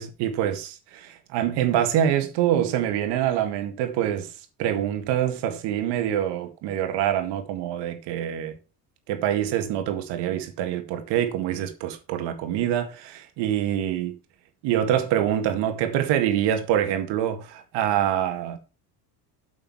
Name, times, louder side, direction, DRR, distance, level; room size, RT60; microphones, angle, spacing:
voice 1, 0.0-4.3 4.6-8.6 9.1-14.1 14.6-18.6, right 10 dB, 90° right, 1.9 m, -25 dB
8.7 x 7.4 x 4.7 m
cardioid pair, 140°, 40 cm